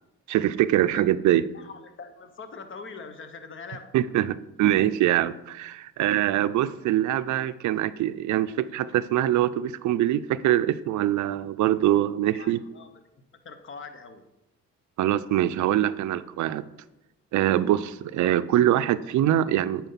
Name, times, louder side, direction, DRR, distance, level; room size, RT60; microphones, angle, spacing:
voice 1, 0.3-1.5 3.9-12.6 15.0-16.6 17.3-19.9, right 12 dB, 70° right, 14 dB, 0.5 m, -23 dB
voice 2, 1.5-4.0 12.3-14.3, left 4 dB, 40° left, 8 dB, 1.0 m, -43 dB
9.1 x 4.4 x 5.6 m, 0.92 s
cardioid pair, 90°, 30 cm